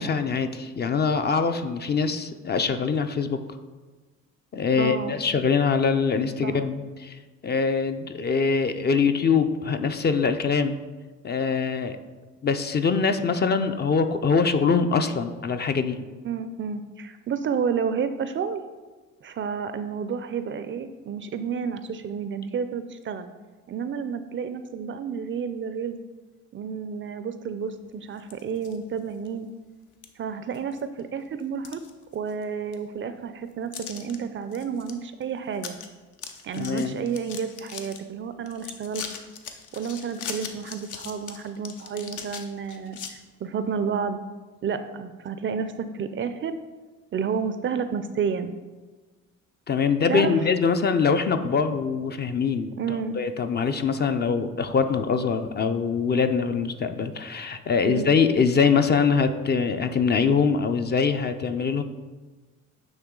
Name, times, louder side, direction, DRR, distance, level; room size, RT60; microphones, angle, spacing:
voice 1, 0.0-3.4 4.5-10.8 11.2-12.0 12.4-16.0 36.5-37.0 49.7-61.8, left 5 dB, 35° left, 8 dB, 0.4 m, -23 dB
voice 2, 4.8-5.2 6.4-6.6 16.2-18.6 19.2-23.3 23.7-26.0 26.5-29.5 30.2-31.8 32.1-35.8 36.4-39.0 39.7-44.2 44.6-46.6 47.1-48.5 50.1-50.4 52.8-53.2 57.9-58.2, right 6 dB, 40° right, 11 dB, 0.4 m, -30 dB
sound 1, 28.2-28.8 29.2-29.3 30.0-30.1 30.5-31.0 31.4-32.4 32.7-32.8 33.7-34.2 34.5-34.9 35.2-35.3 35.6-35.9 36.1-38.0 38.5-43.1, left 7 dB, 75° left, 0.7 m, -39 dB
8.8 x 3.1 x 3.7 m, 1.3 s
cardioid pair, 90°, 30 cm